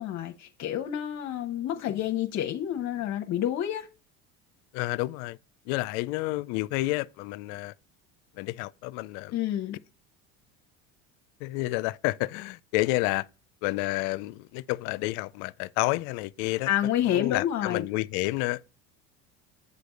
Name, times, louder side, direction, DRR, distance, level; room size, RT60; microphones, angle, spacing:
voice 1, 0.0-3.9 9.3-9.8 16.7-17.9, left 11 dB, 50° left, 0.9 m, -29 dB
voice 2, 4.7-5.4 5.7-7.7 8.4-9.3 11.4-13.3 13.6-16.7 17.0-18.7, left 20 dB, 70° left, 0.5 m, -30 dB
8.2 x 3.4 x 5.3 m
supercardioid pair, 90°, 35 cm